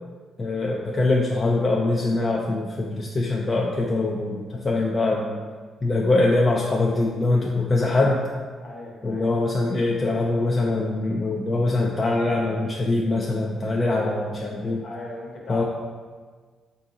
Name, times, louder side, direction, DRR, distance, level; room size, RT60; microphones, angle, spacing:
voice 1, 0.4-5.4 5.8-8.2 9.0-14.8 15.5-15.6, left 2 dB, 35° left, -2 dB, 0.4 m, -23 dB
voice 2, 8.6-9.2 13.9-14.2 14.8-15.6, left 2 dB, 55° left, -2 dB, 1.0 m, -38 dB
3.6 x 2.7 x 3.8 m, 1.5 s
cardioid pair, 80°, 0 cm